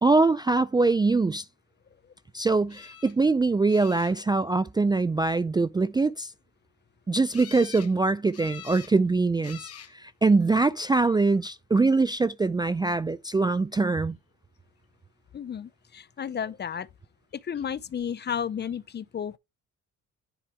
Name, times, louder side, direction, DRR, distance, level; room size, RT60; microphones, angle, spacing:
voice 1, 0.0-1.4 2.3-6.3 7.1-9.6 10.0-14.2, right 3 dB, 15° right, 0.3 m, -23 dB
sound 1, 2.7-3.1 3.7-4.4 7.3-7.9 8.3-8.9 9.4-9.9 10.8-11.3 17.5-17.7 18.0-18.1, left 9 dB, 50° left, 1.1 m, -45 dB
voice 2, 15.3-16.9 17.3-19.4, left 8 dB, 35° left, 0.5 m, -33 dB
10.0 x 4.6 x 3.1 m
cardioid pair, 90°, 30 cm